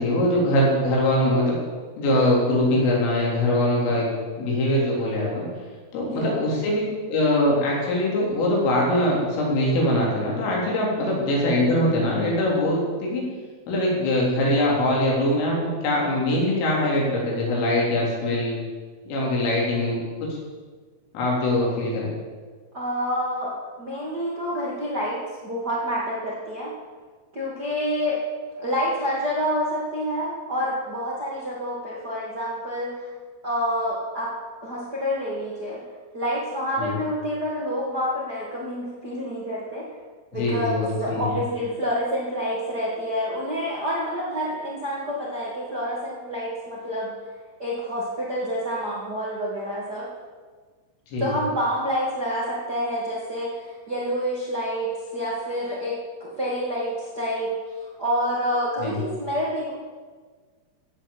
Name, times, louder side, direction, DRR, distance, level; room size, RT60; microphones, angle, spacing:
voice 1, 0.0-1.6 2.0-4.1 4.4-5.5 5.9-6.8 7.1-13.2 13.7-18.6 19.1-20.3 21.1-22.1 36.8-36.9 40.3-41.3 51.1-51.3 58.8-59.0, left 1 dB, 85° left, -4 dB, 6.3 m, -22 dB
voice 2, 6.0-6.4 22.7-26.7 27.3-28.2 28.5-33.1 33.4-34.3 34.6-35.8 36.1-39.9 40.3-47.1 47.6-50.1 51.2-57.5 58.0-59.7, equal, 40° right, -5 dB, 1.4 m, -28 dB
15.0 x 8.8 x 7.3 m, 1.5 s
omnidirectional pair, 5.6 m